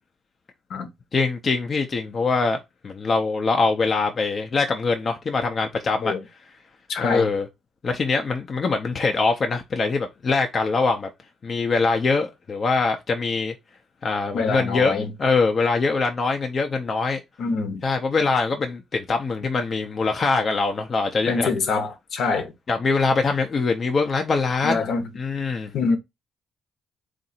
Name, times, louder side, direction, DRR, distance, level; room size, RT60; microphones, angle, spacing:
voice 1, 1.1-2.6 2.8-6.1 7.0-7.5 7.8-11.1 11.4-13.5 14.0-17.2 17.8-21.5 22.7-24.9 25.2-25.7, left 4 dB, 45° left, 0.6 m, -23 dB
voice 2, 6.9-7.3 14.3-15.1 17.4-17.8 21.3-22.5 24.6-25.0 25.7-26.0, left 4 dB, 70° left, 0.9 m, -25 dB
3.8 x 2.5 x 4.2 m
cardioid pair, 90°, 0 cm